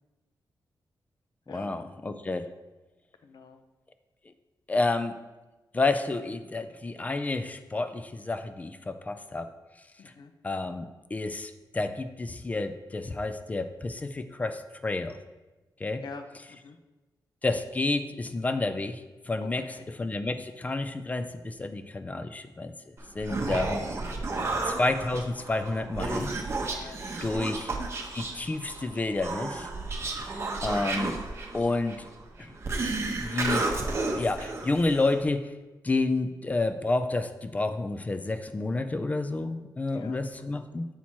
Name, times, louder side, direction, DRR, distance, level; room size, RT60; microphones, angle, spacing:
voice 1, 1.5-2.5 4.7-5.2 5.7-9.5 10.4-15.2 15.8-16.0 17.4-22.7 23.2-23.8 24.6-26.3 27.2-27.7 28.1-29.7 30.1-30.3 30.6-31.2 31.5-32.0 32.4-32.6 33.2-33.7 34.1-35.5 35.8-40.9, left 2 dB, 20° left, 10 dB, 0.3 m, -30 dB
voice 2, 3.2-3.6 10.0-10.3 16.0-16.8 19.4-19.9 23.3-23.7 24.3-24.6 26.7-27.0 39.9-40.6, left 5 dB, 70° left, 8 dB, 0.6 m, -46 dB
Human voice, 23.0-35.2, right 3 dB, 35° right, 0.8 m, -32 dB
7.3 x 4.3 x 4.4 m, 1.2 s
wide cardioid pair, 165°, 8 cm